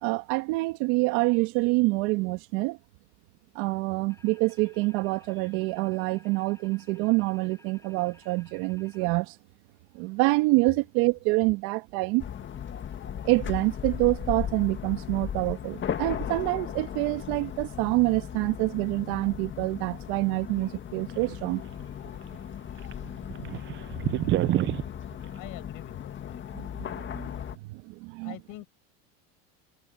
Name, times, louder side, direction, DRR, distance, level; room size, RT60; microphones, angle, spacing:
voice 1, 0.0-2.8 3.6-9.3 9.9-12.2 13.2-21.6 23.5-23.6 26.5-27.3 27.6-28.4, right 24 dB, 70° right, 2.0 m, -26 dB
sound 1, 4.1-9.2, left 2 dB, 10° left, 6.3 m, -58 dB
sound 2, 12.2-27.6, left 9 dB, 30° left, 1.9 m, -37 dB
sound 3, 21.1-22.1 22.3-22.4 22.8-24.9, right 14 dB, 30° right, 0.5 m, -27 dB
voice 2, 23.9-24.2 25.4-26.5 28.2-28.7, left 19 dB, 60° left, 5.6 m, -43 dB
supercardioid pair, 120°, 37 cm